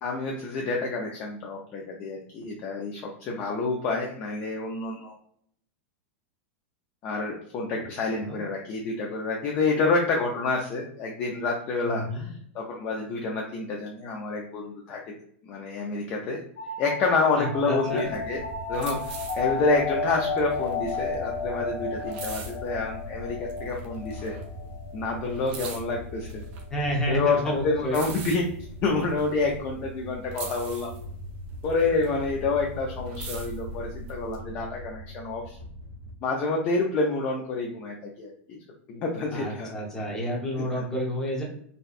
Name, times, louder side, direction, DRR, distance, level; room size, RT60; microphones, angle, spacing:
voice 1, 0.0-5.2 7.0-15.0 15.4-16.4 16.8-18.4 18.7-19.0 19.3-24.3 24.9-26.4 27.1-28.5 28.8-30.9 31.6-35.6 36.2-38.6 38.9-39.7 40.7-40.8, left 3 dB, 25° left, 0 dB, 0.4 m, -28 dB
voice 2, 11.9-12.3 17.4-18.1 26.7-28.0 39.3-41.4, equal, 10° left, -3 dB, 0.7 m, -30 dB
sound 1, 16.6-25.9, left 4 dB, 45° left, 0.8 m, -33 dB
sound 2, 17.9-23.1 23.5-24.8 25.1-30.0 30.3-32.6 32.9-34.4, right 5 dB, 40° right, 0.6 m, -43 dB
sound 3, 18.1-36.1, equal, 85° left, 1.0 m, -41 dB
4.0 x 2.1 x 2.4 m, 0.66 s
supercardioid pair, 175°, 7 cm